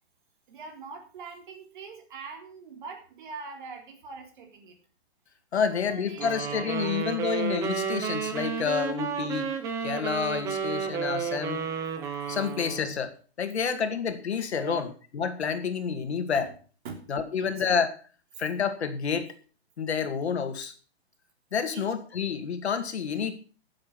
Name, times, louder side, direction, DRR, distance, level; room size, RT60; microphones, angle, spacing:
voice 1, 0.5-4.8 5.5-6.9 14.5-14.9 16.3-16.5 16.8-17.6 21.7-21.9, right 5 dB, 50° right, 4 dB, 3.6 m, -43 dB
voice 2, 5.5-9.5 9.8-11.6 12.3-13.1 13.4-14.9 15.1-16.5 17.1-17.9 18.4-19.3 19.8-20.7 21.5-23.4, left 6 dB, 80° left, 8 dB, 2.3 m, -29 dB
sound 1, 6.2-13.0, right 6 dB, 10° right, 0.7 m, -32 dB
13.0 x 7.8 x 6.1 m, 0.39 s
hypercardioid pair, 160°, 33 cm